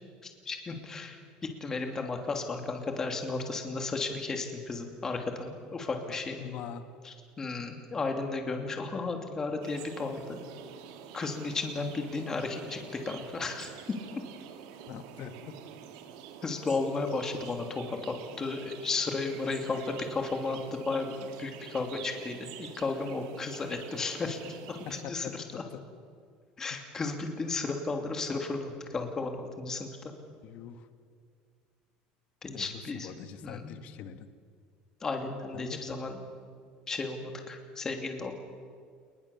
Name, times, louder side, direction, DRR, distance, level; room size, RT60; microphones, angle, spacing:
voice 1, 0.2-6.4 7.0-10.4 11.1-13.7 16.4-24.4 24.7-25.6 26.6-30.1 32.4-33.1 33.4-33.8 35.0-36.2 36.9-38.3, left 3 dB, 15° left, 4 dB, 2.9 m, -34 dB
voice 2, 6.1-6.8 14.9-15.5 25.0-25.8 30.4-30.9 32.5-32.7 32.9-34.3 35.5-35.8, left 8 dB, 45° left, 9 dB, 1.6 m, -43 dB
sound 1, 9.6-25.0, right 9 dB, 85° right, 2.5 m, -47 dB
29.5 x 20.5 x 7.2 m, 2.1 s
cardioid pair, 165°, 3 cm